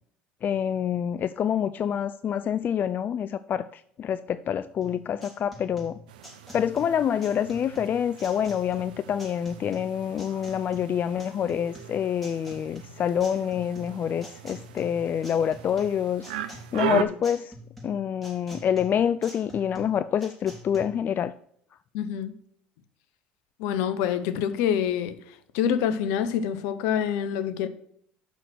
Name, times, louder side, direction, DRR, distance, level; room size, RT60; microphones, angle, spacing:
voice 1, 0.4-6.0 6.5-17.5 17.8-21.3, left 8 dB, 40° left, 0.4 m, -27 dB
sound 1, 4.8-20.8, equal, ahead, 3.9 m, -46 dB
sound 2, 6.1-17.0, right 11 dB, 80° right, 0.6 m, -38 dB
voice 2, 21.9-22.3 23.6-25.2 25.5-27.7, left 9 dB, 70° left, 0.8 m, -26 dB
7.0 x 5.9 x 6.1 m
hypercardioid pair, 70°, 5 cm